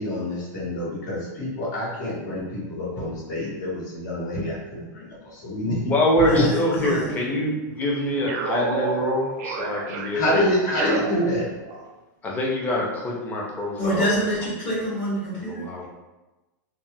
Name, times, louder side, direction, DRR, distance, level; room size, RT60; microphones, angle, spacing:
voice 1, 0.0-5.9 6.3-6.5 10.1-11.5, left 1 dB, 75° left, -5 dB, 1.4 m, -26 dB
voice 2, 5.5-10.6 12.2-14.2 14.7-14.8 15.3-15.9, left 1 dB, 15° left, -3 dB, 0.5 m, -25 dB
voice 3, 6.3-7.1 13.8-15.6, equal, 35° left, -8 dB, 0.9 m, -26 dB
sound 1, 6.8-7.8 8.3-11.9, right 5 dB, 60° right, 0.4 m, -31 dB
3.3 x 2.1 x 2.7 m, 1.1 s
supercardioid pair, 160°, 10 cm